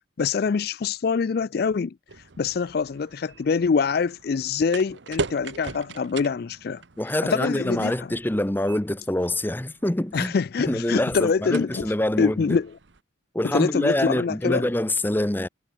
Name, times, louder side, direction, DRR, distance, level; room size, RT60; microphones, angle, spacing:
voice 1, 0.0-1.9 2.4-6.8 7.2-8.1 10.1-11.9 12.2-12.7 13.4-14.7, left 5 dB, 50° left, 0.4 m, -25 dB
sound 1, 2.1-13.0, right 3 dB, 70° right, 1.1 m, -40 dB
voice 2, 7.0-10.3 10.7-12.6 13.3-15.5, left 1 dB, 10° left, 0.7 m, -25 dB
head